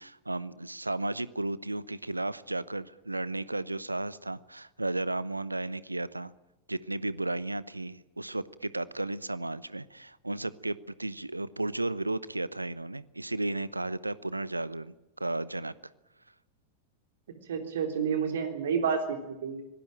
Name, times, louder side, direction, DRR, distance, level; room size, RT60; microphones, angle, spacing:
voice 1, 0.0-6.3 6.7-15.7, right 2 dB, 85° right, 19 dB, 0.8 m, -34 dB
voice 2, 17.5-19.6, right 6 dB, 60° right, 5 dB, 3.5 m, -30 dB
25.5 x 18.0 x 9.2 m, 0.98 s
figure-of-eight pair, 90°, 0 cm